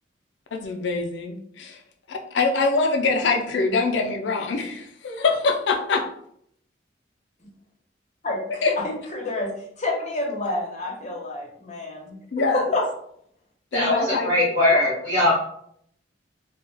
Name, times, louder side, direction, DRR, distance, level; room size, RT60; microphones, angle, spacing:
voice 1, 0.5-1.8 2.1-6.0 8.6-8.7 12.3-12.7 13.7-14.3, left 4 dB, 70° left, 4 dB, 0.4 m, -24 dB
voice 2, 8.2-9.5 9.8-12.8, left 2 dB, 40° left, -2 dB, 0.8 m, -29 dB
voice 3, 13.7-15.3, left 1 dB, 50° right, -8 dB, 0.8 m, -20 dB
2.3 x 2.2 x 3.2 m, 0.67 s
head